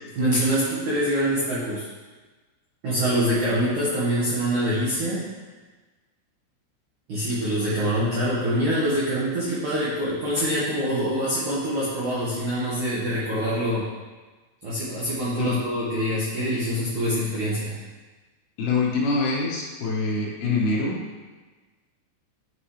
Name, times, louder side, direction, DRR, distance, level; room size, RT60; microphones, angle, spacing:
voice 1, 0.1-1.9 2.8-5.3 7.1-13.9 14.6-17.8, equal, 70° right, -9 dB, 1.9 m, -25 dB
voice 2, 18.6-21.0, left 3 dB, 70° left, -3 dB, 2.6 m, -24 dB
10.5 x 6.3 x 3.2 m, 1.3 s
omnidirectional pair, 5.7 m